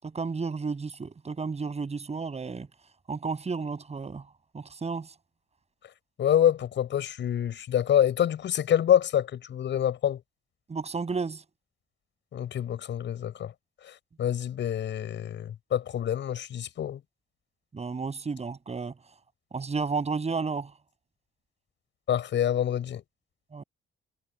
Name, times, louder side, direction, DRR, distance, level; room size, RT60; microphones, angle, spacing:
voice 1, 0.0-2.7 3.1-4.2 4.5-5.1 10.7-11.4 17.7-19.0 19.5-20.7 23.5-23.6, right 4 dB, 35° right, 7.1 m, -32 dB
voice 2, 6.2-10.2 12.3-13.5 13.8-13.9 14.2-17.0 22.1-23.0, left 10 dB, 65° left, 7.3 m, -26 dB
cardioid pair, 90°, 20 cm